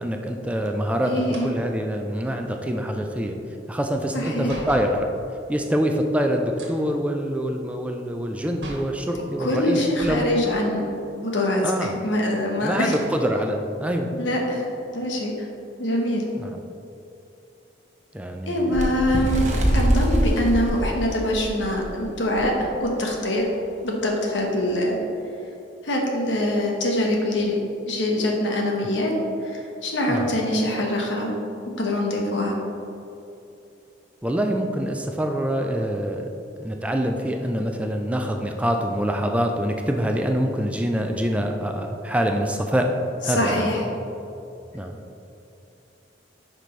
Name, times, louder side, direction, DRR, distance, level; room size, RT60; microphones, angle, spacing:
voice 1, 0.0-1.1 1.4-3.4 3.7-5.1 5.5-10.3 11.6-12.0 12.6-14.1 16.4-16.6 18.1-18.8 19.1-19.2 30.1-30.3 34.2-36.3 36.6-42.9 43.2-43.7 44.7-45.0, equal, 5° right, 3 dB, 0.4 m, -25 dB
voice 2, 1.0-1.5 4.1-4.6 9.4-10.8 11.2-11.6 12.0-12.9 14.1-14.7 14.9-15.5 15.8-16.2 18.5-19.4 19.7-23.4 23.8-25.0 25.8-27.6 27.9-29.1 29.4-31.3 31.8-32.6 43.3-43.8, left 1 dB, 80° left, 0 dB, 1.3 m, -24 dB
sound 1, 1.2-5.0 6.5-9.0 9.9-10.3 10.7-10.8 11.9-12.4 12.8-13.2 13.8-13.9 14.3-15.7, right 1 dB, 70° right, 1.4 m, -41 dB
Bird, 18.7-21.9 22.4-22.5 22.8-23.1 23.9-24.0, equal, 40° right, 1.0 m, -23 dB
9.9 x 5.2 x 3.2 m, 2.8 s
head